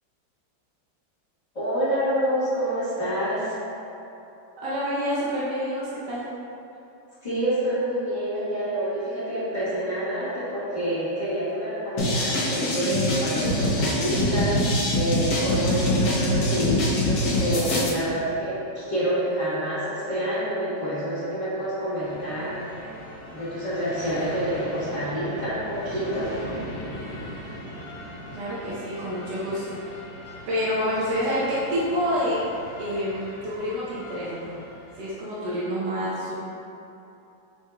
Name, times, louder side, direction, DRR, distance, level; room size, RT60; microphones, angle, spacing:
voice 1, 1.5-3.6 7.2-22.5 23.3-26.3, right 1 dB, 25° left, -15 dB, 1.1 m, -27 dB
voice 2, 4.6-6.2 28.4-29.9 30.5-32.4 32.8-34.6 35.0-36.3, equal, 70° right, -9 dB, 1.3 m, -28 dB
sound 1, 12.0-17.9, left 1 dB, 65° left, 1.2 m, -24 dB
sound 2, 22.0-35.1, left 1 dB, 80° left, 1.6 m, -40 dB
4.8 x 4.5 x 2.2 m, 2.9 s
omnidirectional pair, 2.0 m